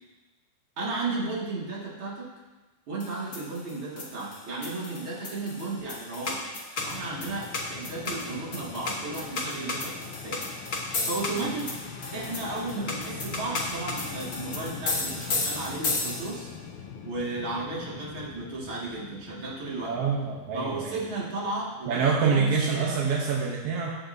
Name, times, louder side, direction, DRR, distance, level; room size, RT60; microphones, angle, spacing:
voice 1, 0.8-2.3 2.9-6.4 6.8-10.4 11.0-11.7 12.1-16.5 17.0-20.0 20.5-23.0, right 3 dB, 40° right, -5 dB, 2.7 m, -34 dB
sound 1, 3.0-16.5, left 2 dB, 45° left, 1.2 m, -34 dB
Fixed-wing aircraft airplane, 6.8-22.0, left 7 dB, 70° left, 1.9 m, -43 dB
voice 2, 19.9-20.9 21.9-23.9, right 5 dB, 65° right, -2 dB, 1.5 m, -26 dB
18.0 x 7.2 x 2.7 m, 1.2 s
omnidirectional pair, 3.8 m